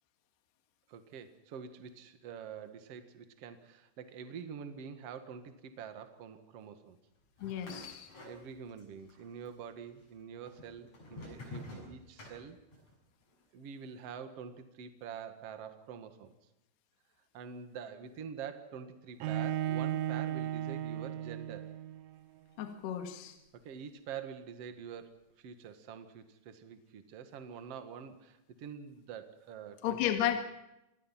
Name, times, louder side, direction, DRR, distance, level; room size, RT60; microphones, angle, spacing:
voice 1, 0.9-7.0 8.2-12.6 13.5-16.3 17.3-21.7 23.5-30.4, right 7 dB, 65° right, 8 dB, 1.5 m, -46 dB
voice 2, 7.4-8.1 22.6-23.4 29.8-30.4, left 11 dB, 60° left, 5 dB, 3.7 m, -33 dB
sound 1, 7.4-8.8 9.1-9.8 10.5-12.9, left 2 dB, 35° left, 8.1 m, -48 dB
Bowed string instrument, 19.2-22.2, right 11 dB, 80° right, 3.5 m, -35 dB
27.0 x 19.5 x 5.9 m, 0.89 s
omnidirectional pair, 5.7 m